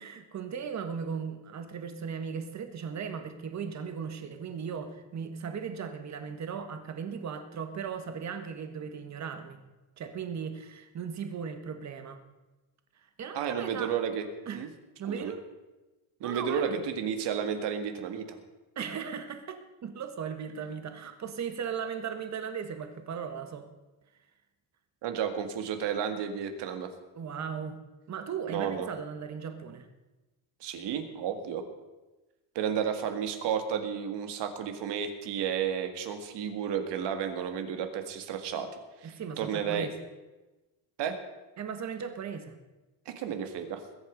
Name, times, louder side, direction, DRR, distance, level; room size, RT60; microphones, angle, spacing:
voice 1, 0.0-9.6 10.0-12.2 13.0-13.9 14.5-14.6 15.0-15.4 16.2-16.8 18.7-23.7 27.1-27.8 28.1-29.9 39.0-39.9 41.6-42.6, right 6 dB, 40° right, 8 dB, 1.5 m, -37 dB
voice 2, 13.3-14.2 14.5-14.7 15.1-15.3 16.2-18.4 25.0-26.9 28.5-28.9 30.6-31.6 32.6-38.7 39.0-39.9 41.0-41.2 43.1-43.8, right 8 dB, 65° right, 7 dB, 2.0 m, -32 dB
21.0 x 8.2 x 5.2 m, 1.1 s
cardioid pair, 135°, 44 cm